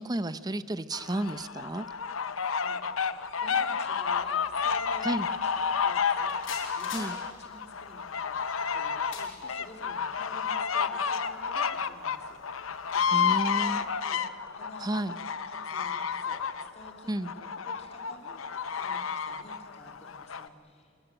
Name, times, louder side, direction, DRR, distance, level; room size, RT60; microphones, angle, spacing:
voice 1, 0.0-1.8 5.0-5.3 6.9-7.2 13.1-13.8 14.8-15.2 17.1-17.3, right 1 dB, 20° right, 14 dB, 0.6 m, -32 dB
sound 1, 0.9-20.5, left 6 dB, 90° left, 0.8 m, -31 dB
voice 2, 3.4-20.9, left 1 dB, 30° left, 1 dB, 3.1 m, -51 dB
sound 2, 4.0-14.0, left 6 dB, 70° left, 6.7 m, -50 dB
26.0 x 22.0 x 9.0 m, 2.2 s
head